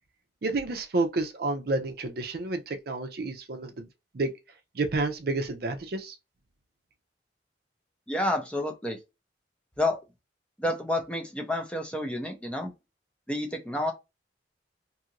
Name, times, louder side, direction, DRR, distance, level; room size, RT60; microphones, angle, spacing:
voice 1, 0.4-3.9 4.1-4.3 4.7-6.1, right 2 dB, 55° right, 0.5 m, -30 dB
voice 2, 8.1-9.0 9.8-10.0 10.6-12.7 13.3-13.9, left 1 dB, 5° left, 0.6 m, -29 dB
2.7 x 2.5 x 2.8 m
head